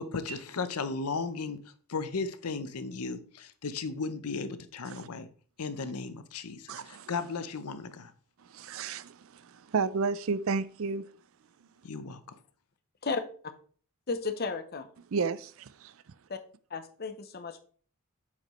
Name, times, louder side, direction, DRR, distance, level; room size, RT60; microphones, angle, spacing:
voice 1, 0.0-1.6 1.9-5.3 5.6-8.1 11.8-12.2, left 4 dB, 85° left, 0.7 m, -35 dB
voice 2, 6.7-7.1 8.5-11.0 15.1-15.9, right 4 dB, 65° right, 0.4 m, -32 dB
voice 3, 14.1-14.9 16.3-16.4 16.7-17.6, left 4 dB, 45° left, 0.8 m, -33 dB
8.3 x 5.1 x 3.1 m
head